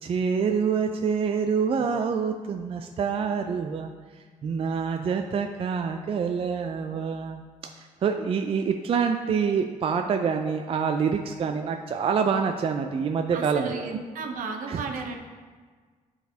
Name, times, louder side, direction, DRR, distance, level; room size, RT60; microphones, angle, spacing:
voice 1, 0.0-3.9 4.4-7.4 7.8-14.0 14.7-14.8, right 6 dB, 45° right, 5 dB, 0.4 m, -26 dB
voice 2, 13.3-15.2, right 4 dB, 75° right, 4 dB, 0.7 m, -34 dB
9.0 x 4.0 x 2.8 m, 1.5 s
cardioid pair, 95°, 14 cm